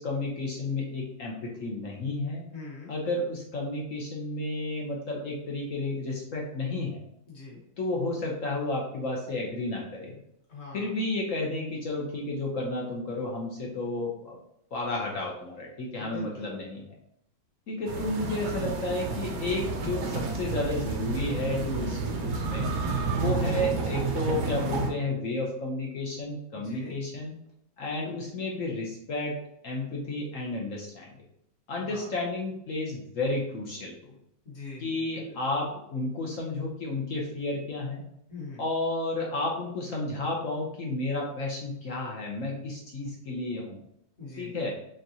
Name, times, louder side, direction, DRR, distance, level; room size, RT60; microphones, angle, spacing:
voice 1, 0.0-2.4 2.9-7.0 7.8-10.2 10.7-14.4 14.7-16.9 17.7-22.7 23.2-27.3 27.8-29.4 29.6-31.1 31.7-34.2 34.8-38.0 38.6-43.8 44.4-44.7, left 2 dB, 65° left, -2 dB, 0.8 m, -32 dB
voice 2, 2.5-2.9 7.3-7.6 10.5-10.9 16.0-16.6 23.0-23.4 26.5-26.9 31.8-32.1 34.4-35.4 38.3-38.6 44.2-44.6, left 3 dB, 40° left, -3 dB, 1.2 m, -43 dB
sound 1, 17.9-24.9, right 4 dB, 65° right, 1.1 m, -30 dB
3.9 x 3.5 x 2.8 m, 0.76 s
omnidirectional pair, 2.2 m